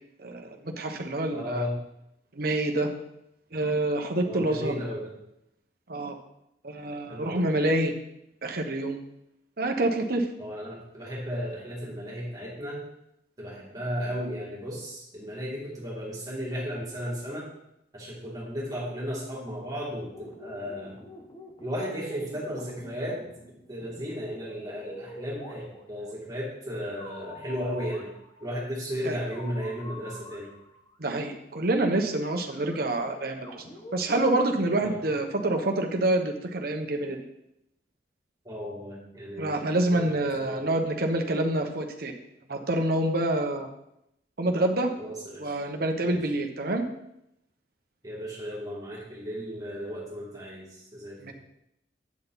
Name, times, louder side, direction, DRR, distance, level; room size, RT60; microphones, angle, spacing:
voice 1, 0.2-1.7 2.3-2.9 3.5-4.7 5.9-6.1 6.6-7.9 8.4-9.0 9.6-10.3 29.0-29.2 31.0-33.6 33.9-37.2 39.4-42.1 42.5-43.7 44.4-44.9 45.4-46.9 51.2-51.3, right 1 dB, 60° right, 4 dB, 1.1 m, -27 dB
voice 2, 1.3-1.8 4.2-5.1 7.1-7.4 10.4-12.8 13.4-17.5 17.9-21.0 21.6-23.2 23.7-28.1 28.4-30.5 34.8-35.1 38.4-39.6 39.9-40.7 45.0-45.6 46.0-46.2 48.0-51.3, equal, 20° right, -5 dB, 2.6 m, -35 dB
sound 1, 19.9-26.1 26.8-28.6 29.2-31.0 31.7-31.9 32.2-34.5, left 1 dB, 30° left, 1.4 m, -47 dB
8.6 x 7.8 x 4.0 m, 0.81 s
head